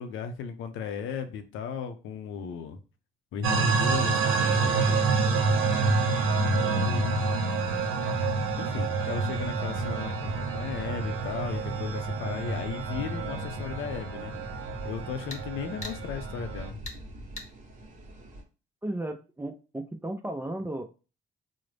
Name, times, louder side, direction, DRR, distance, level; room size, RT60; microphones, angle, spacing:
voice 1, 0.0-2.8 3.3-5.1 6.4-7.3 8.6-14.3 14.8-16.8, left 6 dB, 80° left, 0.6 m, -36 dB
sound 1, 3.4-16.7, right 4 dB, 80° right, 0.7 m, -28 dB
sound 2, 9.3-18.4, right 1 dB, 40° right, 0.9 m, -44 dB
sound 3, 15.3-15.5 15.8-16.0 16.9-17.0 17.4-17.5, left 2 dB, 35° left, 1.0 m, -40 dB
voice 2, 18.8-20.8, right 1 dB, 10° right, 0.4 m, -34 dB
3.8 x 2.1 x 3.2 m
cardioid pair, 90°, 20 cm